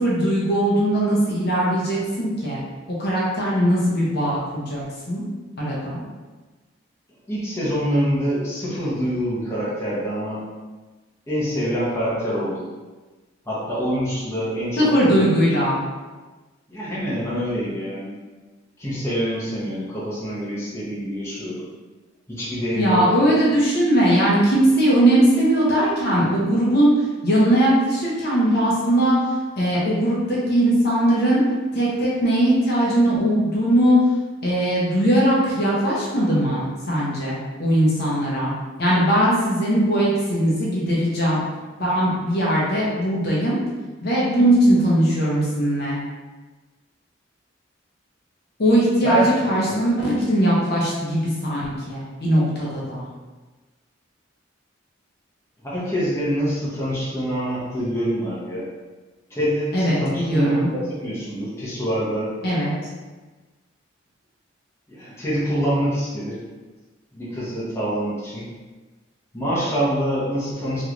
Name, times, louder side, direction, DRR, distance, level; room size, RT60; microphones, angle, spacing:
voice 1, 0.0-2.6 2.9-5.2 5.6-6.0 14.8-15.8 22.7-26.9 27.2-29.3 29.6-31.4 31.7-34.0 34.4-38.5 38.8-41.4 41.8-43.6 44.0-46.0 48.6-53.0 59.7-60.7 62.4-62.7, right 1 dB, 55° left, -6 dB, 0.8 m, -20 dB
voice 2, 7.3-10.4 11.3-12.7 13.5-15.3 16.7-18.2 18.8-21.6 22.3-23.0 49.0-49.8 55.6-58.7 59.3-62.3 64.9-66.4 67.1-68.4 69.3-70.8, equal, 15° left, -9 dB, 0.8 m, -25 dB
3.1 x 3.0 x 2.5 m, 1.2 s
head